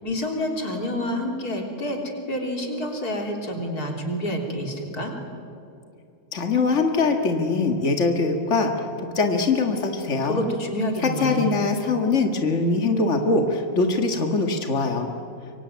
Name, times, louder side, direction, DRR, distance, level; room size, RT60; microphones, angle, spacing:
voice 1, 0.0-2.0 2.3-5.1 10.2-11.6, equal, 25° left, 2 dB, 3.4 m, -28 dB
voice 2, 6.3-10.4 11.0-15.1, left 3 dB, 60° left, 4 dB, 0.7 m, -22 dB
25.5 x 24.0 x 9.3 m, 2.5 s
omnidirectional pair, 4.3 m